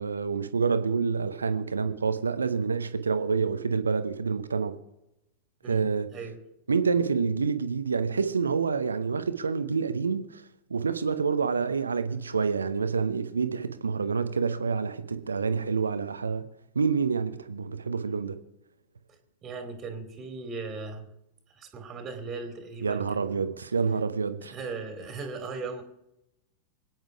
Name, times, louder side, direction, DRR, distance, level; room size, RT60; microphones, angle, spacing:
voice 1, 0.0-4.8 5.7-6.1 6.7-10.4 10.7-16.5 16.7-18.4 22.8-24.5, right 5 dB, 75° right, 1.0 m, -27 dB
voice 2, 5.6-6.4 19.4-21.1 21.5-23.5 24.4-25.8, right 4 dB, 25° right, 2.7 m, -38 dB
25.5 x 9.4 x 4.8 m
figure-of-eight pair, 90°, 0 cm